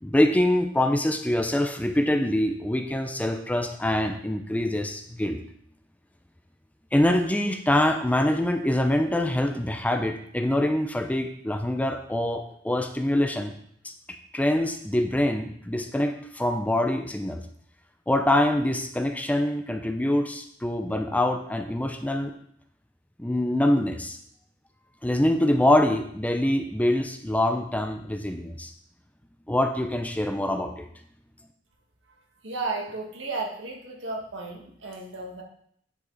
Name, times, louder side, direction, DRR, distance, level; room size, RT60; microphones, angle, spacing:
voice 1, 0.0-5.4 6.9-13.5 13.8-13.9 14.3-17.4 18.1-22.3 23.2-24.2 25.0-28.7 29.5-30.9, left 1 dB, 10° left, 5 dB, 0.6 m, -24 dB
voice 2, 32.4-35.4, right 3 dB, 80° right, 0 dB, 1.8 m, -33 dB
10.0 x 5.3 x 4.0 m, 0.66 s
head